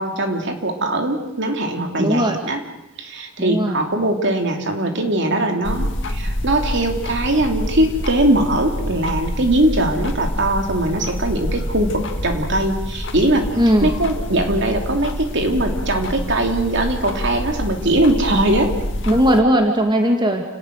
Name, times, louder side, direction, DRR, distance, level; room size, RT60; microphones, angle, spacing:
voice 1, 0.0-2.6 3.0-13.5 13.8-18.8, right 1 dB, 60° right, 4 dB, 3.0 m, -20 dB
voice 2, 2.0-2.4 3.4-3.8 13.6-13.9 19.1-20.4, equal, 20° right, 3 dB, 2.0 m, -17 dB
sound 1, 5.6-19.4, left 1 dB, 60° left, 2.1 m, -27 dB
29.0 x 19.0 x 6.5 m, 0.93 s
head